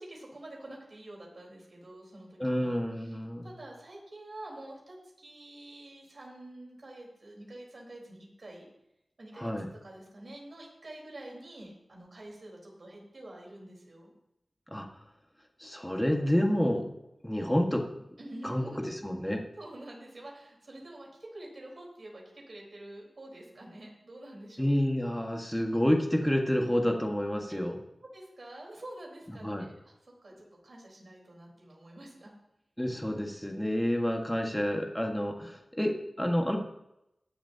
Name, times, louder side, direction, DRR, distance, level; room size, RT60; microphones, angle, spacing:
voice 1, 0.0-8.7 9.2-9.5 9.8-14.1 18.2-18.9 19.6-24.7 27.5-27.6 28.1-32.3, right 1 dB, 55° right, -2 dB, 4.2 m, -47 dB
voice 2, 2.4-3.5 9.4-9.7 14.7-14.9 15.6-16.9 17.2-17.8 18.4-19.4 24.6-27.8 29.4-29.7 32.8-36.6, equal, 5° left, 2 dB, 1.6 m, -29 dB
21.0 x 7.3 x 2.9 m, 0.85 s
wide cardioid pair, 85°, 0 cm